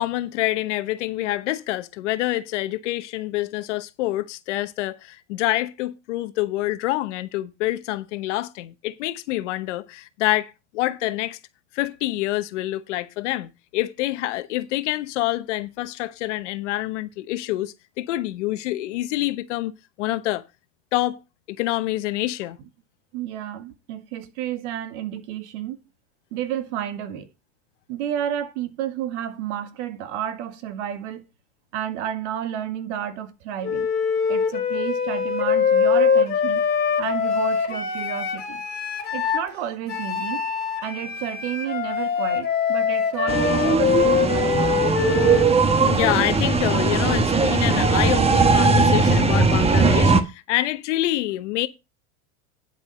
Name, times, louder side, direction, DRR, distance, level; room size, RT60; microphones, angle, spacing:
voice 1, 0.0-11.4 11.7-19.7 20.0-20.4 20.9-21.2 21.5-22.6 43.6-43.7 45.8-51.7, left 16 dB, 75° left, 1.0 m, -26 dB
voice 2, 23.1-25.8 26.3-27.3 27.9-31.3 31.7-33.9 34.3-36.6 37.0-38.6 39.1-40.4 40.8-44.6, right 10 dB, 70° right, 1.7 m, -31 dB
Wind instrument woodwind instrument, 33.6-39.5 39.9-45.5, left 6 dB, 25° left, 2.6 m, -23 dB
sound 1, 43.3-50.2, right 4 dB, 15° right, 1.1 m, -19 dB
10.5 x 4.9 x 5.5 m
supercardioid pair, 110°, 36 cm